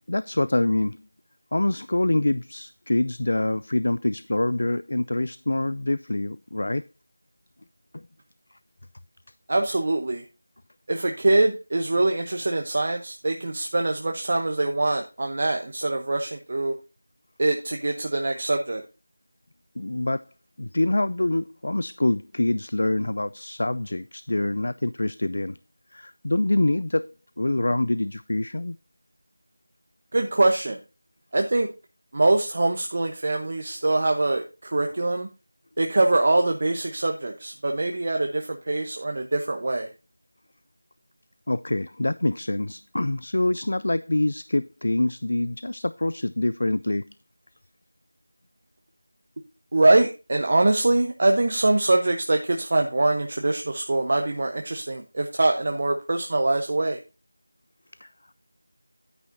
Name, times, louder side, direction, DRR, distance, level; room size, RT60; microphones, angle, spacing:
voice 1, 0.1-1.0 1.5-6.8 7.9-8.0 19.8-20.2 20.6-25.6 25.9-28.8 41.5-47.0 58.0-58.1, left 1 dB, 55° left, 0.3 m, -25 dB
voice 2, 9.5-10.2 10.9-16.7 17.4-18.8 30.1-30.8 31.3-31.7 32.1-35.3 35.8-39.9 49.7-57.0, right 2 dB, 35° right, 0.9 m, -23 dB
9.5 x 9.4 x 2.7 m
figure-of-eight pair, 175°, 0 cm